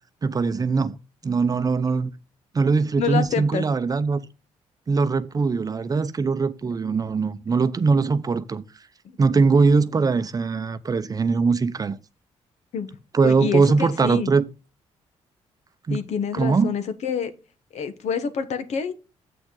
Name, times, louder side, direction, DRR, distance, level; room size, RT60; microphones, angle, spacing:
voice 1, 0.2-1.0 1.2-2.1 2.5-4.2 4.9-8.6 9.2-12.0 13.1-14.5 15.9-16.0 16.3-16.7, right 4 dB, 30° right, 0.7 m, -21 dB
voice 2, 3.0-3.6 12.7-12.9 13.2-14.3 15.9-17.3 17.7-18.9, left 6 dB, 70° left, 1.2 m, -27 dB
7.8 x 6.1 x 3.9 m
cardioid pair, 90°, 12 cm